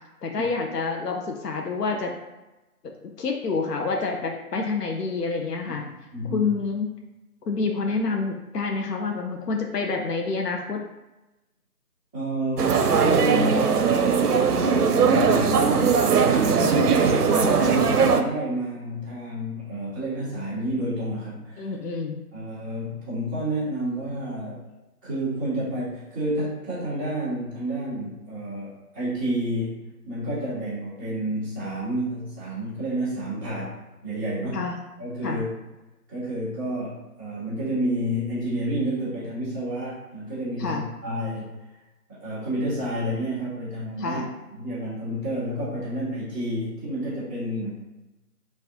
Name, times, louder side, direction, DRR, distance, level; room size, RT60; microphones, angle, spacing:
voice 1, 0.2-2.1 2.8-2.9 3.2-5.8 6.3-6.9 7.4-10.8 21.6-22.2 34.5-34.8 35.2-35.4 40.6-40.8 44.0-44.3, left 4 dB, 85° left, 2 dB, 0.6 m, -28 dB
voice 2, 6.1-6.5 12.1-13.8 14.5-21.7 22.3-24.6 25.0-29.8 30.0-33.7 34.0-34.6 35.0-35.6 36.1-41.5 42.1-44.2 44.5-47.8, right 1 dB, 15° left, -12 dB, 1.3 m, -30 dB
sound 1, 12.6-18.2, right 5 dB, 75° right, 0.5 m, -20 dB
4.0 x 2.4 x 2.6 m, 1.0 s
figure-of-eight pair, 175°, 46 cm